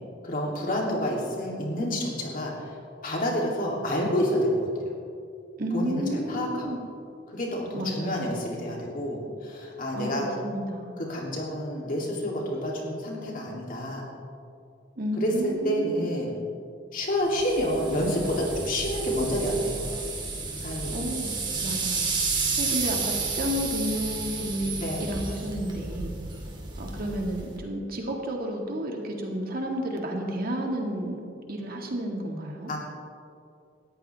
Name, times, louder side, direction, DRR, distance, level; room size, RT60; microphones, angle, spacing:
voice 1, 0.2-2.7 3.0-4.7 5.7-6.7 7.3-10.3 11.0-14.1 15.2-16.3 16.9-19.9 20.5-21.0 24.8-25.1 32.7-32.8, equal, 50° left, -2 dB, 3.0 m, -28 dB
voice 2, 5.6-6.8 7.7-8.3 9.9-11.0 15.0-16.1 20.9-21.3 21.6-22.1 22.6-26.1 26.8-31.2 31.5-32.7, equal, 50° right, 1 dB, 2.0 m, -31 dB
sound 1, 17.3-27.6, right 4 dB, 25° right, 2.4 m, -32 dB
19.5 x 13.5 x 3.5 m, 2.4 s
head